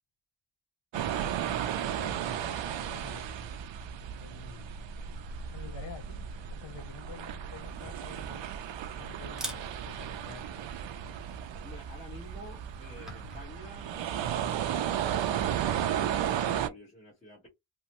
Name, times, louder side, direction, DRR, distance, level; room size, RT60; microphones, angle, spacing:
voice 1, 0.9-3.6 4.2-4.9 5.5-6.3 6.6-8.5 9.0-10.7, left 6 dB, 75° left, 0.9 m, -49 dB
sound 1, 0.9-16.7, right 9 dB, 90° right, 0.5 m, -34 dB
Camera, 7.6-13.4, equal, ahead, 0.8 m, -47 dB
voice 2, 11.6-14.9 15.2-17.5, left 1 dB, 15° left, 1.3 m, -49 dB
3.0 x 2.1 x 2.8 m
wide cardioid pair, 135°, 43 cm